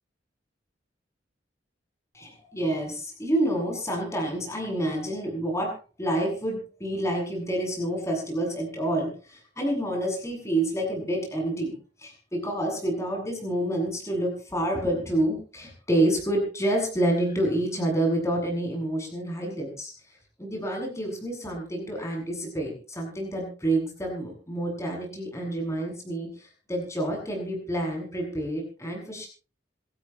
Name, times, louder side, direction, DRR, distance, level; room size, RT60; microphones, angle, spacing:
voice 1, 2.1-5.7 6.0-19.9 20.4-29.3, right 1 dB, 15° left, 0 dB, 7.8 m, -28 dB
26.5 x 14.0 x 3.2 m, 0.37 s
head